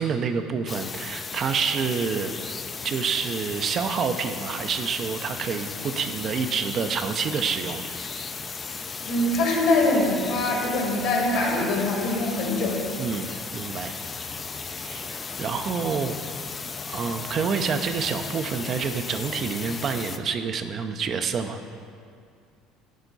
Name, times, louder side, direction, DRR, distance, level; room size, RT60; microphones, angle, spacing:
voice 1, 0.0-2.3 2.8-7.9 13.0-14.0 14.8-16.2 16.9-21.6, right 6 dB, 45° right, 7 dB, 0.5 m, -28 dB
sound 1, 0.7-20.2, left 4 dB, 30° left, 0.4 m, -35 dB
voice 2, 9.1-12.8, left 2 dB, 70° left, -2 dB, 1.9 m, -23 dB
10.0 x 4.4 x 4.0 m, 2.3 s
hypercardioid pair, 70°, 0 cm